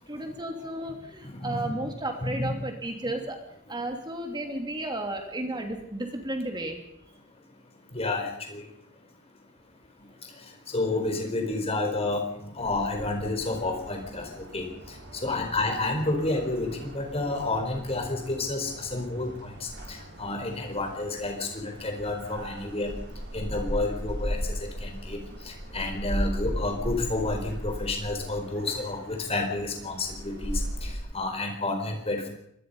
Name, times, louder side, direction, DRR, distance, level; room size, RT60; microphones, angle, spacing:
voice 1, 0.0-3.4 3.7-6.8 15.2-15.5, right 1 dB, 20° right, 4 dB, 2.9 m, -33 dB
voice 2, 1.2-1.7 2.2-2.5 7.9-8.6 10.7-14.7 15.2-22.9 23.3-25.2 25.4-32.3, left 2 dB, 30° left, 4 dB, 4.5 m, -30 dB
sound 1, 12.6-31.0, equal, 55° right, 4.6 m, -37 dB
25.0 x 20.5 x 5.6 m, 0.75 s
head